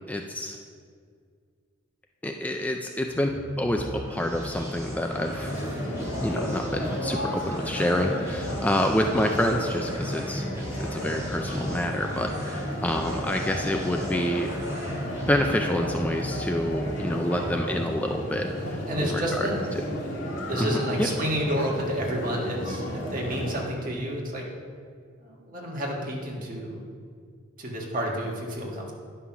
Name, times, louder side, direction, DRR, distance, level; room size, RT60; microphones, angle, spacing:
voice 1, 0.1-0.6 2.2-5.9 6.2-14.5 15.3-19.5 19.8-19.9 20.6-21.1, left 1 dB, 10° left, 3 dB, 0.4 m, -28 dB
sound 1, 3.0-16.7, equal, 15° right, 1.4 m, -37 dB
sound 2, 5.1-23.6, equal, 65° left, 2.4 m, -33 dB
voice 2, 18.6-19.6 20.4-24.5 25.2-26.8 27.6-28.9, equal, 45° right, -2 dB, 1.6 m, -30 dB
9.9 x 5.7 x 5.9 m, 2.1 s
head